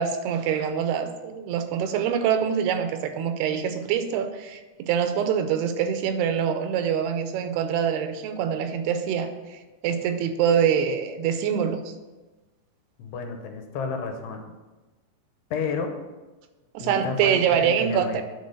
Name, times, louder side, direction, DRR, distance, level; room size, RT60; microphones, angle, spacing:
voice 1, 0.0-11.9 16.7-18.2, right 8 dB, 80° right, 8 dB, 2.6 m, -25 dB
voice 2, 13.0-14.4 15.5-16.0 16.8-18.2, left 5 dB, 80° left, 5 dB, 2.9 m, -31 dB
9.3 x 4.2 x 6.5 m, 1.2 s
omnidirectional pair, 4.8 m